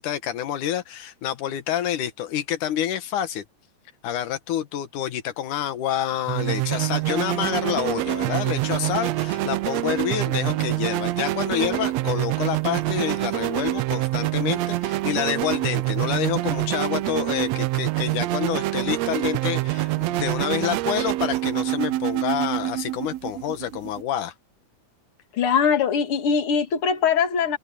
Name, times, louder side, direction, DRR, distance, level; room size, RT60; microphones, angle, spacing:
voice 1, 0.0-3.4 4.0-24.3, left 10 dB, 90° left, 2.9 m, -28 dB
sound 1, 6.3-24.0, right 16 dB, 75° right, 1.7 m, -26 dB
voice 2, 25.4-27.6, left 6 dB, 50° left, 2.7 m, -21 dB
omnidirectional pair, 3.5 m